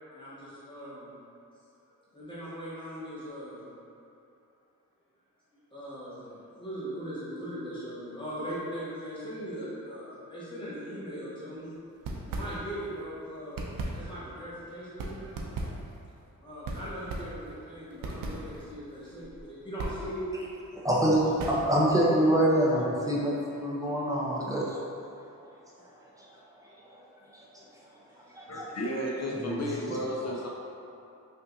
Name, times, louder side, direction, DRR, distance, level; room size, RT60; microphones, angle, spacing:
voice 1, 0.1-1.1 2.1-3.7 5.5-11.7 12.2-15.4 16.4-20.3 22.0-22.3 25.7-25.9 28.3-28.5, equal, 15° left, -10 dB, 1.4 m, -40 dB
sound 1, 11.9-13.0 13.3-21.9, right 2 dB, 70° right, 0.6 m, -38 dB
voice 2, 20.8-21.2 21.5-24.8 28.3-28.7 29.4-29.6 29.9-30.0, right 1 dB, 10° right, -5 dB, 0.7 m, -25 dB
voice 3, 28.5-30.5, equal, 45° left, -3 dB, 0.6 m, -33 dB
5.4 x 2.5 x 2.7 m, 2.7 s
wide cardioid pair, 105°, 35 cm